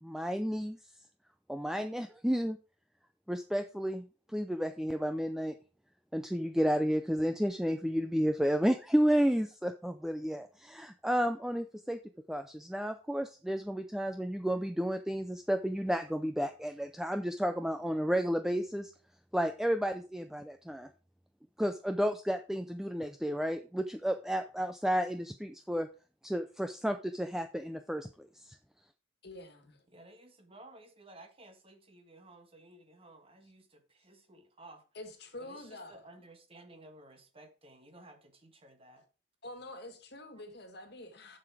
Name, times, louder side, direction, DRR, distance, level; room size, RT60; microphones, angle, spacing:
voice 1, 0.0-0.8 1.5-2.6 3.3-5.6 6.1-12.0 12.3-18.9 19.3-20.9 21.6-25.9 26.2-28.6, equal, ahead, 0.4 m, -32 dB
voice 2, 29.2-29.8 34.9-36.1 39.4-41.4, left 1 dB, 55° left, 1.7 m, -47 dB
voice 3, 29.9-34.8 35.4-39.0, right 2 dB, 30° right, 1.4 m, -55 dB
7.3 x 6.9 x 4.7 m
head